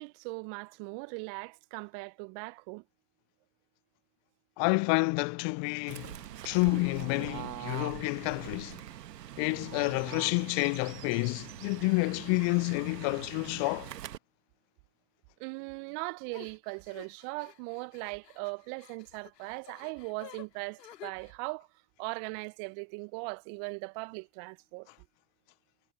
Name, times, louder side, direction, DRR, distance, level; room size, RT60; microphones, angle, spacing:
voice 1, 0.0-2.8 15.4-21.7 22.0-24.9, right 33 dB, 70° right, 1.3 m, -39 dB
voice 2, 4.6-6.2 6.4-8.8 9.4-13.9, left 31 dB, 60° left, 0.6 m, -29 dB
Fowl / Bird, 5.9-14.2, right 12 dB, 85° right, 1.4 m, -43 dB
sound 1, 16.3-21.3, left 12 dB, 85° left, 2.8 m, -52 dB
figure-of-eight pair, 50°, 48 cm